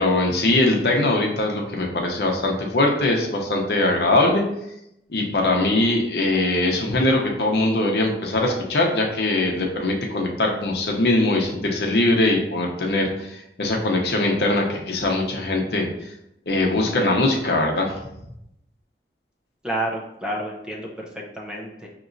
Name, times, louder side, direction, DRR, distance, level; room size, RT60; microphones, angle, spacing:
voice 1, 0.0-4.4 5.1-16.1 16.5-18.0, left 2 dB, 65° left, 1 dB, 0.7 m, -21 dB
voice 2, 19.6-21.9, right 1 dB, 5° right, -2 dB, 0.5 m, -30 dB
6.0 x 2.9 x 2.6 m, 0.82 s
head